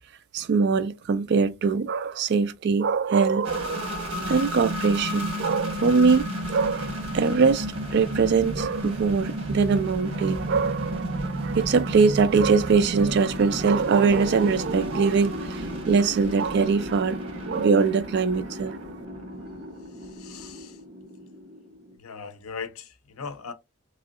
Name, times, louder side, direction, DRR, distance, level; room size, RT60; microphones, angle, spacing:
voice 1, 0.3-7.7 7.9-18.8, right 5 dB, 50° right, 0.3 m, -22 dB
sound 1, 3.4-21.9, equal, 85° right, 1.5 m, -33 dB
voice 2, 20.0-20.8 22.0-23.5, left 5 dB, 85° left, 0.6 m, -39 dB
3.1 x 2.7 x 2.4 m
head